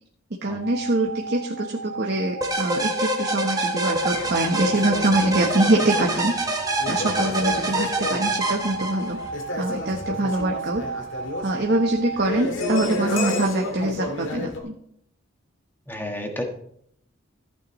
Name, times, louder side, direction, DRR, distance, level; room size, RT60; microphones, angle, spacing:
voice 1, 0.4-6.4 6.9-9.2 9.6-10.9 11.4-14.7, right 2 dB, 50° right, 1 dB, 1.0 m, -24 dB
sound 1, 0.6-12.3, right 3 dB, 90° right, 1.1 m, -35 dB
sound 2, 2.4-9.3, right 2 dB, 15° right, 1.2 m, -26 dB
sound 3, 4.1-14.6, left 2 dB, 65° left, 1.9 m, -32 dB
voice 2, 15.9-16.4, left 1 dB, 10° left, 3 dB, 1.4 m, -31 dB
14.5 x 8.8 x 3.1 m, 0.70 s
head